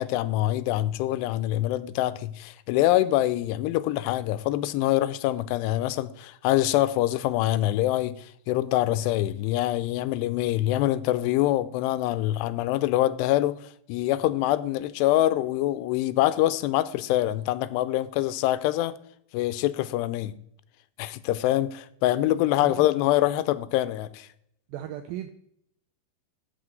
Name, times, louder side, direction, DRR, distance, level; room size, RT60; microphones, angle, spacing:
voice 1, 0.0-13.6 13.9-18.9 19.3-20.4 21.0-24.3, left 15 dB, 85° left, 2.7 m, -25 dB
voice 2, 22.3-22.9 24.7-25.3, right 12 dB, 85° right, 2.0 m, -37 dB
11.5 x 4.3 x 7.7 m
omnidirectional pair, 4.8 m